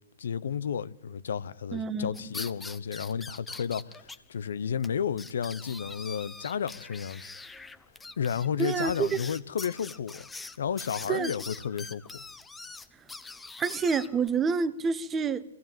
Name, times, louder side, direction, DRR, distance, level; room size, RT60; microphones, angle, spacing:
voice 1, 0.2-7.3 8.2-10.3 10.6-12.2, left 7 dB, 70° left, 0.8 m, -32 dB
voice 2, 1.7-2.3 8.6-9.2 11.1-11.3 13.6-15.4, right 5 dB, 20° right, 1.1 m, -28 dB
sound 1, 2.1-4.2 4.5-4.6 4.8-4.9 5.2-14.3, left 3 dB, 10° left, 1.1 m, -43 dB
23.5 x 17.0 x 9.1 m
hypercardioid pair, 125°, 0 cm